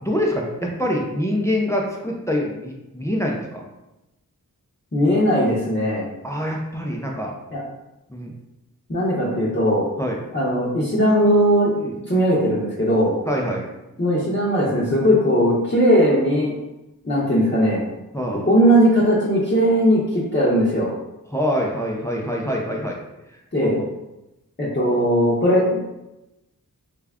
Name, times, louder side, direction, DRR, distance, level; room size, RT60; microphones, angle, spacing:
voice 1, 0.0-3.6 6.2-7.3 8.1-8.3 10.0-10.2 11.8-11.9 13.3-13.7 18.1-18.5 21.3-23.0 23.6-23.9, equal, 10° left, -1 dB, 0.5 m, -25 dB
voice 2, 4.9-6.1 7.5-7.6 8.9-9.9 10.3-11.7 12.1-13.1 14.0-16.5 17.0-17.8 18.5-20.9 23.5-23.8 24.6-25.8, equal, 30° left, -8 dB, 0.8 m, -18 dB
3.2 x 2.3 x 3.5 m, 0.95 s
wide cardioid pair, 50°, 36 cm